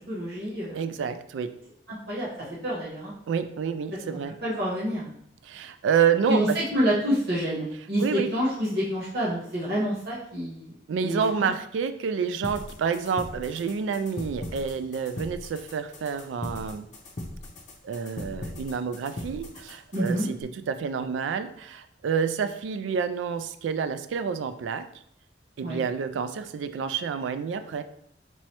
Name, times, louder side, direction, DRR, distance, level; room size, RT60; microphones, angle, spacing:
voice 1, 0.1-0.8 1.9-3.1 4.4-5.1 6.3-6.5 6.7-11.5 19.9-20.3 25.6-25.8, equal, 60° right, -7 dB, 1.0 m, -28 dB
voice 2, 0.7-1.6 3.3-4.4 5.4-6.6 8.0-8.3 10.9-16.9 17.8-20.2 20.7-24.9 25.6-27.8, right 6 dB, 85° right, 10 dB, 0.3 m, -28 dB
sound 1, 12.4-20.4, left 1 dB, 40° left, 0.7 m, -39 dB
4.7 x 3.1 x 2.9 m, 0.70 s
head